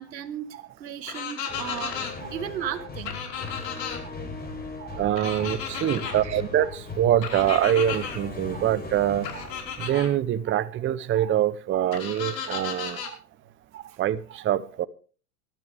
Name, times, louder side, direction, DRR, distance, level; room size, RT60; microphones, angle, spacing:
voice 1, 0.0-2.0 2.3-3.2 3.5-3.6 6.0-6.4, right 9 dB, 90° right, 1.9 m, -35 dB
sound 1, 1.1-2.1 3.1-4.0 5.2-6.1 7.2-8.2 9.2-10.1 11.9-13.1, left 7 dB, 80° left, 5.2 m, -34 dB
sound 2, 1.5-10.9, left 3 dB, 20° left, 4.2 m, -39 dB
voice 2, 4.8-9.5 9.8-13.2 13.7-14.9, right 11 dB, 25° right, 0.8 m, -25 dB
21.0 x 12.5 x 3.5 m
hypercardioid pair, 110°, 49 cm